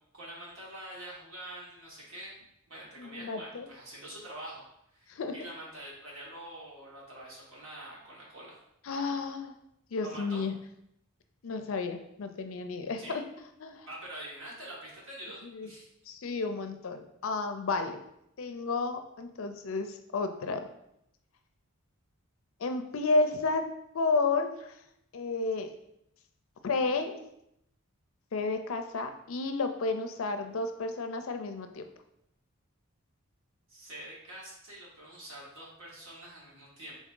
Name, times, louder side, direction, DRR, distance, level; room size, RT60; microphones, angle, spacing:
voice 1, 0.1-2.4 2.7-4.6 4.9-8.6 10.0-10.5 13.0-13.2 13.9-15.9 33.7-36.9, right 1 dB, 65° right, -4 dB, 1.6 m, -45 dB
voice 2, 3.0-3.7 5.1-5.3 8.9-9.5 9.9-10.5 11.4-13.2 13.6-13.9 15.5-15.7 16.1-18.0 18.4-19.9 20.1-20.7 22.6-23.7 23.9-24.5 25.1-25.7 26.6-27.2 28.3-31.8, left 3 dB, 65° left, 7 dB, 0.5 m, -31 dB
4.0 x 3.5 x 3.7 m, 0.78 s
head